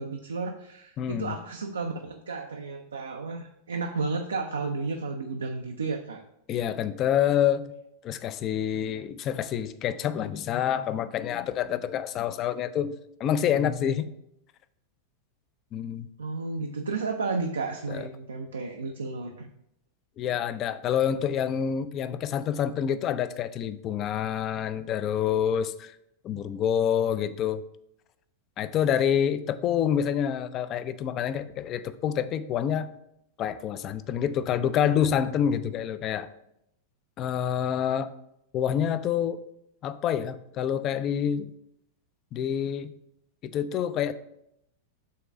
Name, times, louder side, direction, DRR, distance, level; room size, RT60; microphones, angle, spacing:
voice 1, 0.0-6.2 16.2-19.5 20.2-20.3, right 4 dB, 70° right, 4 dB, 0.4 m, -32 dB
voice 2, 1.0-1.3 6.5-7.7 8.0-12.9 13.2-14.1 15.7-16.1 17.9-18.1 20.2-25.9 26.2-27.6 28.6-32.9 33.4-36.3 37.2-38.1 38.5-39.4 39.8-41.5 42.3-42.9 43.4-44.1, left 9 dB, 35° left, 14 dB, 0.4 m, -27 dB
5.6 x 3.8 x 4.8 m, 0.79 s
figure-of-eight pair, 90°, 0 cm